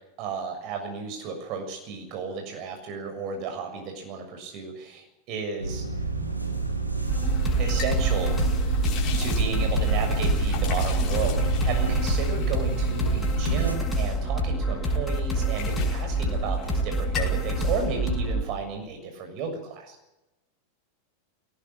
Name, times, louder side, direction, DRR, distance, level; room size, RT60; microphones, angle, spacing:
voice 1, 0.2-5.8 7.6-8.4 9.2-20.0, right 5 dB, 40° right, 4 dB, 6.8 m, -33 dB
sound 1, 5.6-13.8, right 2 dB, 90° right, 2.9 m, -28 dB
sound 2, 7.0-14.7 15.1-16.8 17.0-17.5, left 8 dB, 35° left, 5.2 m, -40 dB
sound 3, 7.1-18.4, right 1 dB, 15° left, 6.8 m, -27 dB
18.5 x 18.5 x 8.8 m, 0.95 s
figure-of-eight pair, 90°, 0 cm